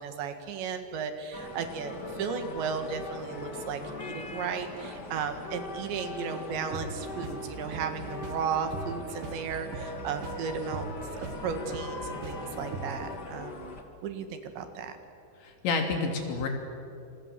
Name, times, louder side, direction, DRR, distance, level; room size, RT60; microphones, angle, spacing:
voice 1, 0.0-10.9 11.4-13.7 14.0-15.0, right 6 dB, 75° right, 7 dB, 4.1 m, -35 dB
sound 1, 1.3-13.8, left 2 dB, 40° left, 1.6 m, -40 dB
sound 2, 6.7-13.2, right 4 dB, 55° right, 2.7 m, -41 dB
voice 2, 15.4-16.5, left 4 dB, 75° left, 3 dB, 5.2 m, -29 dB
28.5 x 27.5 x 7.6 m, 2.5 s
omnidirectional pair, 5.3 m